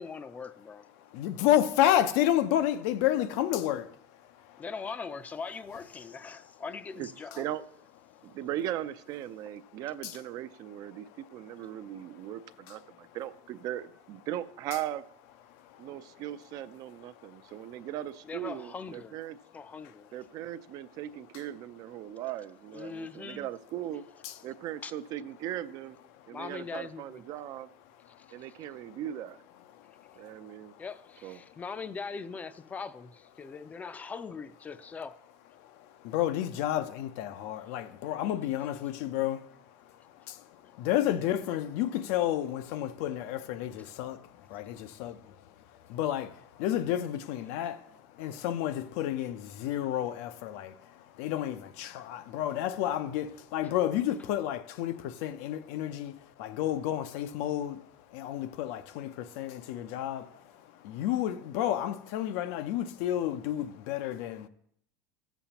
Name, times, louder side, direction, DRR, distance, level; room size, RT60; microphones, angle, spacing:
voice 1, 0.0-0.9 4.6-7.5 18.3-19.2 19.5-20.1 22.7-23.5 24.8-24.9 26.3-27.2 28.2-28.3 30.8-35.2 37.7-37.8, left 5 dB, 20° left, 0.4 m, -41 dB
voice 2, 1.0-4.6 8.1-8.3 10.0-10.1 10.9-11.2 11.7-12.3 12.7-13.1 15.5-16.0 17.1-17.9 19.8-19.9 21.3-21.4 22.0-22.1 24.2-24.4 26.1-26.3 28.0-29.0 29.7-30.8 31.4-31.6 35.6-64.5, left 12 dB, 70° left, 0.5 m, -32 dB
voice 3, 8.3-15.0 15.8-19.4 20.1-24.0 24.4-26.0 26.3-27.7 28.3-29.4 30.2-30.7 31.2-31.4, right 12 dB, 50° right, 0.4 m, -38 dB
14.5 x 7.0 x 2.9 m
supercardioid pair, 130°, 8 cm